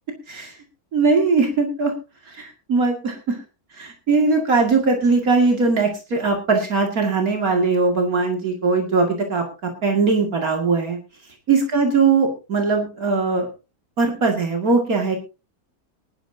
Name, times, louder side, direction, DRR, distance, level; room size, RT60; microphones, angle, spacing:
voice 1, 0.9-1.9 2.3-3.4 3.8-9.4 9.8-11.0 11.5-13.5 14.0-15.2, right 4 dB, 70° right, 2 dB, 2.7 m, -20 dB
22.5 x 11.5 x 2.7 m, 0.30 s
omnidirectional pair, 1.6 m